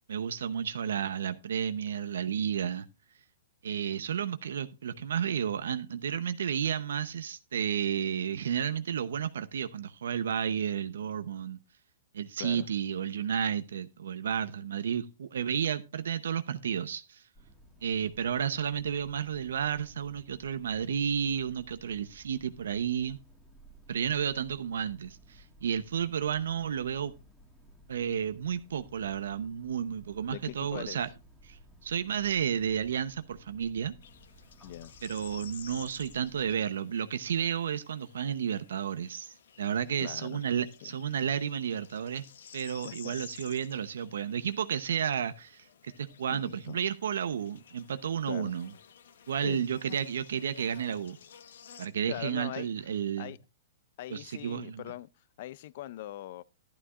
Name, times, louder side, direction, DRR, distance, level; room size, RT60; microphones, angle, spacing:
voice 1, 0.1-2.9 3.6-11.6 12.1-17.2 17.8-23.2 23.9-27.1 27.9-31.1 31.4-33.9 35.0-42.2 42.5-48.7 49.3-51.2 51.8-53.3 54.1-54.8, right 8 dB, 90° right, 0.7 m, -32 dB
sound 1, 17.3-36.5, right 1 dB, 5° left, 1.7 m, -57 dB
voice 2, 30.3-31.0 34.6-34.9 40.0-40.4 40.8-40.9 42.8-43.1 46.3-46.8 48.3-48.5 49.4-49.7 52.1-52.7 53.2-53.4 54.0-55.1 55.4-56.4, left 14 dB, 40° left, 0.4 m, -41 dB
sound 2, 34.0-51.9, left 8 dB, 70° left, 0.9 m, -53 dB
12.0 x 11.5 x 2.4 m
hypercardioid pair, 175°, 0 cm